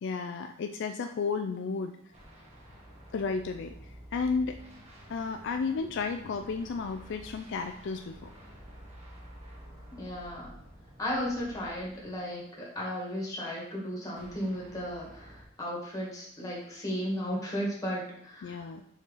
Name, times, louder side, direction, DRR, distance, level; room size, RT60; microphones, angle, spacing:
voice 1, 0.0-2.0 3.1-3.7 4.1-4.6 5.1-8.3 18.4-18.8, left 4 dB, 60° left, 6 dB, 0.4 m, -32 dB
sound 1, 2.1-12.4 14.2-15.4, equal, 30° right, 1.4 m, -50 dB
voice 2, 9.9-10.5 11.0-18.7, equal, 15° left, -4 dB, 1.8 m, -35 dB
4.5 x 4.5 x 5.4 m, 0.70 s
head